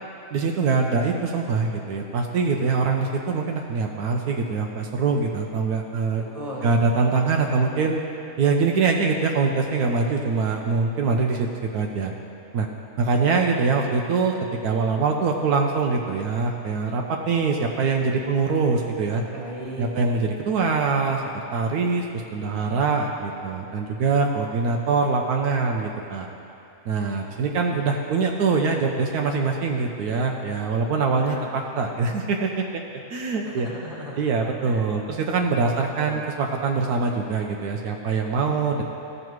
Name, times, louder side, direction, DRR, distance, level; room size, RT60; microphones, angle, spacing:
voice 1, 0.3-6.2 6.6-8.0 8.4-12.1 12.5-12.7 13.0-14.3 14.6-19.2 19.8-22.0 22.3-26.3 26.9-32.8 33.1-33.7 34.2-38.8, right 4 dB, 80° right, 1 dB, 1.2 m, -23 dB
voice 2, 6.3-6.7 19.3-19.9 31.1-31.4 33.4-34.2 34.6-34.9 35.6-36.2, equal, 25° right, -4 dB, 1.6 m, -36 dB
15.0 x 6.6 x 3.1 m, 2.8 s
omnidirectional pair, 1.6 m